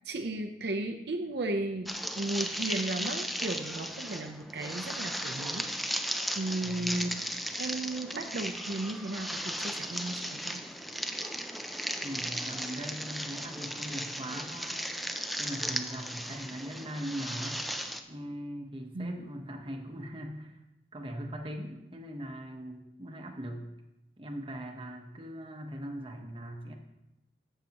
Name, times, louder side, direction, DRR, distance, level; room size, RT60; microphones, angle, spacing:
voice 1, 0.0-1.9 2.2-10.6 18.9-19.2, right 2 dB, 65° right, 4 dB, 0.7 m, -35 dB
sound 1, 1.9-18.0, equal, ahead, 0.4 m, -36 dB
voice 2, 6.6-7.1 12.0-15.0 15.4-17.6 18.1-20.6 20.9-23.7 24.2-26.7, equal, 30° right, 3 dB, 1.0 m, -40 dB
14.0 x 6.7 x 3.0 m, 0.92 s
head